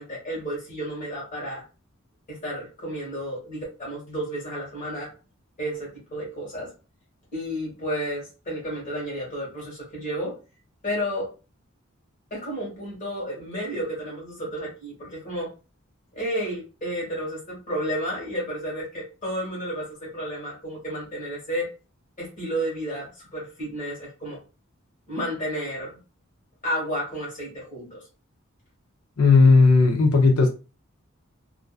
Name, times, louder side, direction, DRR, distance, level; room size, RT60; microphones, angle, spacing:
voice 1, 0.0-1.6 2.3-5.1 5.6-6.7 7.3-10.4 10.8-11.3 12.3-15.5 16.1-21.7 22.2-24.4 25.1-26.0 26.6-28.0, equal, 40° left, -5 dB, 1.2 m, -32 dB
voice 2, 29.2-30.5, left 4 dB, 80° left, 1 dB, 0.5 m, -15 dB
2.5 x 2.3 x 2.4 m, 0.32 s
head